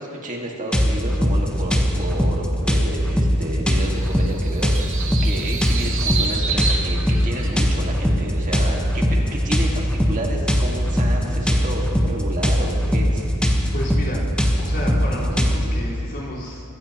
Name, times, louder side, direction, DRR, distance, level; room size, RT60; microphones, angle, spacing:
voice 1, 0.0-13.2, right 1 dB, 35° right, -1 dB, 1.9 m, -31 dB
sound 1, 0.7-15.6, equal, 5° left, 1.1 m, -20 dB
sound 2, 3.8-7.8, right 5 dB, 65° right, 1.1 m, -29 dB
voice 2, 13.7-14.2 14.6-16.6, equal, 50° left, -7 dB, 4.3 m, -31 dB
24.0 x 15.0 x 3.0 m, 2.5 s
head